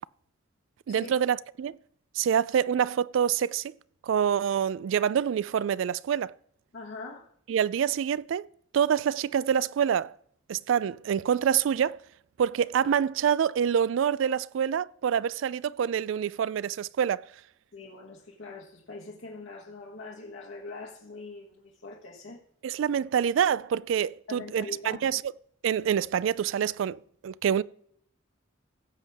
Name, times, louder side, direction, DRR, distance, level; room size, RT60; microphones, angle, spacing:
voice 1, 0.9-1.8 2.1-3.7 4.0-6.3 7.5-8.5 8.7-10.1 10.5-12.0 12.4-17.2 22.6-25.2 25.6-27.6, right 8 dB, 75° right, 0.3 m, -26 dB
voice 2, 6.7-7.3 17.7-22.4 24.3-25.0, left 3 dB, 70° left, 1.3 m, -42 dB
16.5 x 7.5 x 3.5 m
head